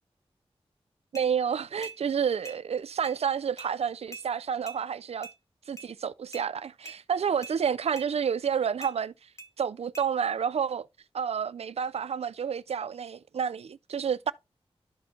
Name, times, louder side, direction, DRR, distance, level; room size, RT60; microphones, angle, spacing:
sound 1, 1.1-1.3 1.8-2.0 2.4-2.6 3.0-3.2 3.6-3.7 4.1-4.3 4.7-4.8 5.2-5.4 5.8-5.9 6.3-6.5 6.9-7.0 7.4-7.6 8.0-8.1 8.8-9.0 9.4-9.5 9.9-10.1, right 2 dB, 30° left, 1.0 m, -43 dB
voice 1, 1.1-5.3 5.7-9.1 9.6-10.9 11.1-14.3, right 7 dB, 80° right, 0.4 m, -29 dB
12.5 x 4.3 x 2.7 m
wide cardioid pair, 80°, 11 cm